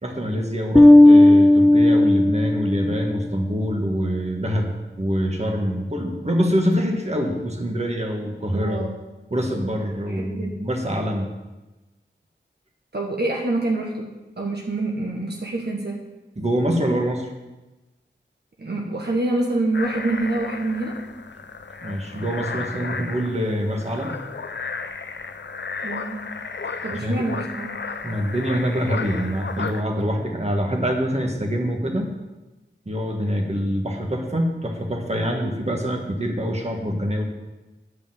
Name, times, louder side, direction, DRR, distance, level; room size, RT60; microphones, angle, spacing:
voice 1, 0.0-8.8 9.3-11.3 16.4-17.3 21.8-24.2 26.9-27.2 28.0-32.1 32.9-37.2, equal, 35° right, 1 dB, 1.8 m, -25 dB
Bass guitar, 0.8-3.2, left 1 dB, 10° left, 0.4 m, -13 dB
voice 2, 8.5-9.0 10.1-10.6 12.9-14.1 14.4-16.0 18.6-21.0 25.8-26.3 26.8-27.8, right 2 dB, 60° right, -1 dB, 1.4 m, -26 dB
sound 1, 19.7-29.8, left 4 dB, 70° left, 0.6 m, -34 dB
11.0 x 5.2 x 7.9 m, 1.1 s
wide cardioid pair, 60°, 19 cm